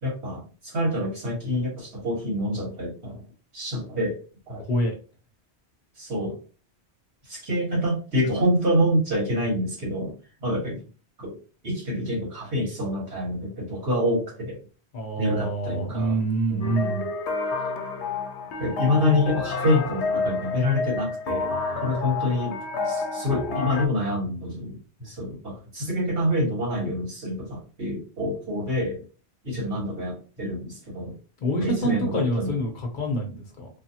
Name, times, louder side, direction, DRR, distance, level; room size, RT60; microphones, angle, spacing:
voice 1, 0.0-3.2 3.5-4.2 4.5-4.6 6.0-6.4 7.3-10.8 11.2-11.4 11.6-14.6 15.2-16.2 16.5-17.1 18.6-21.5 21.8-22.6 22.8-29.1 29.4-31.1 31.6-32.5, left 1 dB, 75° right, -4 dB, 1.9 m, -27 dB
voice 2, 4.6-5.0 14.9-17.0 31.4-33.7, right 1 dB, 50° left, 1 dB, 0.8 m, -26 dB
sound 1, 16.6-23.9, left 4 dB, 85° left, 0.9 m, -29 dB
3.3 x 2.0 x 2.7 m, 0.36 s
omnidirectional pair, 1.1 m